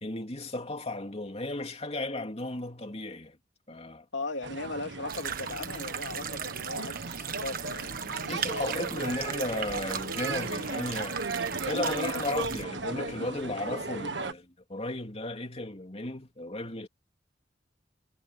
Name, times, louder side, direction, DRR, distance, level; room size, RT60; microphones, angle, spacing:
voice 1, 0.0-3.4 3.7-4.0 8.3-11.3 11.7-16.9, left 2 dB, 35° left, 2.9 m, -35 dB
voice 2, 4.1-8.9 12.3-12.4, left 2 dB, 85° left, 3.2 m, -38 dB
sound 1, 4.4-14.3, right 3 dB, 75° right, 1.7 m, -36 dB
sound 2, 5.1-12.6, right 8 dB, 50° right, 1.4 m, -38 dB
head